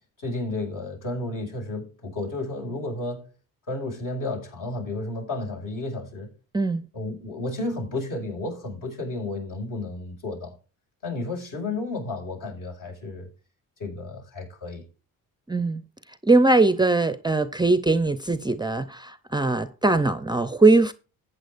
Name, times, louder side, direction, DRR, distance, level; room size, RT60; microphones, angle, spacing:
voice 1, 0.2-3.3 3.7-6.3 6.9-10.6 11.0-13.3 13.8-14.8, left 2 dB, 60° left, 5.7 m, -32 dB
voice 2, 15.5-15.8 16.3-20.9, right 3 dB, 10° right, 0.5 m, -21 dB
15.0 x 8.8 x 2.5 m
cardioid pair, 90°, 35 cm